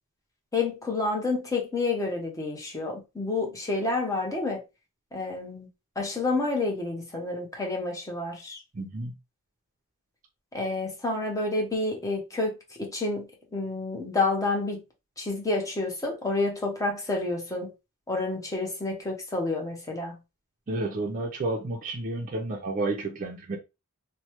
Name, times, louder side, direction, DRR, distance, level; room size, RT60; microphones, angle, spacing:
voice 1, 0.5-4.6 5.1-5.7 6.0-8.6 10.5-14.8 15.2-17.7 18.1-20.2, left 3 dB, 15° left, 0.7 m, -29 dB
voice 2, 8.7-9.1 20.7-23.6, right 2 dB, 35° right, 0.5 m, -31 dB
3.1 x 2.1 x 2.9 m
head